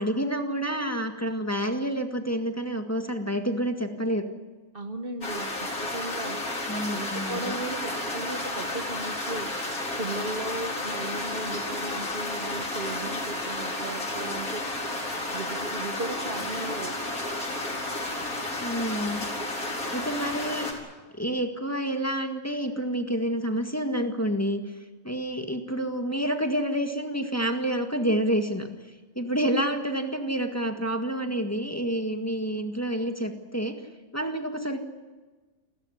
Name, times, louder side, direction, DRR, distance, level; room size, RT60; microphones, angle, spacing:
voice 1, 0.0-4.3 6.7-7.6 18.6-19.3 19.9-20.9 21.1-24.7 25.0-28.7 29.2-33.7 34.1-34.8, right 1 dB, 10° left, 4 dB, 1.8 m, -28 dB
voice 2, 4.7-14.6 15.3-17.0, right 2 dB, 40° right, 6 dB, 1.1 m, -36 dB
sound 1, 5.2-20.7, left 2 dB, 65° left, 4.7 m, -32 dB
29.0 x 13.0 x 9.9 m, 1.3 s
omnidirectional pair, 1.7 m